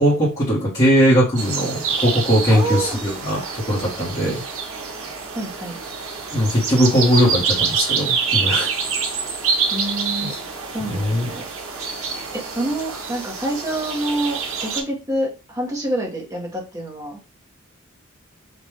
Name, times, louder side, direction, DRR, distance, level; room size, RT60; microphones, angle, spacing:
voice 1, 0.0-4.4 6.3-8.7 10.2-10.3 10.9-11.3, equal, 30° left, -7 dB, 1.3 m, -19 dB
sound 1, 1.4-14.8, right 5 dB, 80° right, 1.1 m, -26 dB
voice 2, 2.5-3.0 5.3-5.8 9.7-10.3 10.7-11.4 12.3-17.2, right 1 dB, 15° right, -1 dB, 1.1 m, -27 dB
5.2 x 2.6 x 3.3 m, 0.32 s
head